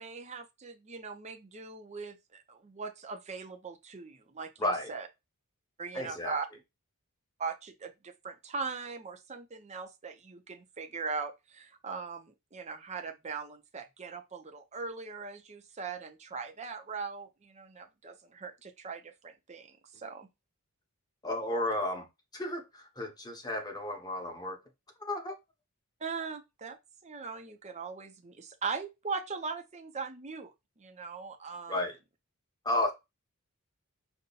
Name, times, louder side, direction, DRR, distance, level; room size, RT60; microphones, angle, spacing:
voice 1, 0.0-5.1 5.8-6.5 7.4-20.3 26.0-26.8 27.0-31.8, right 4 dB, 30° right, 0.6 m, -40 dB
voice 2, 4.6-4.9 5.9-6.3 21.2-22.1 22.3-24.6 25.0-25.3 31.7-32.0 32.6-32.9, left 1 dB, 20° left, 1.0 m, -32 dB
5.4 x 2.2 x 4.0 m
head